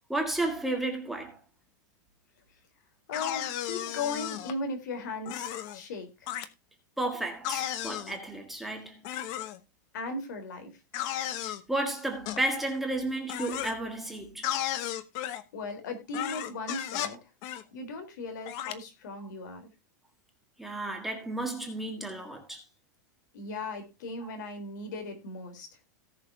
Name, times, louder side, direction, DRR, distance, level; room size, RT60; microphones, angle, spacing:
voice 1, 0.1-1.4 7.0-9.0 11.4-14.5 20.6-22.6 24.2-24.3, right 2 dB, ahead, 1.7 m, -33 dB
voice 2, 3.1-6.3 9.9-10.7 15.5-17.2 17.7-19.7 23.3-25.7, left 3 dB, 75° left, 4.0 m, -37 dB
sound 1, 3.1-4.5 5.3-5.8 6.3-6.5 7.4-8.2 9.0-9.6 10.9-11.6 12.3-12.4 13.3-13.7 14.4-15.4 16.1-17.2 17.4-17.6 18.5-18.7, left 12 dB, 40° left, 1.0 m, -34 dB
18.0 x 6.6 x 2.8 m
supercardioid pair, 170°, 10 cm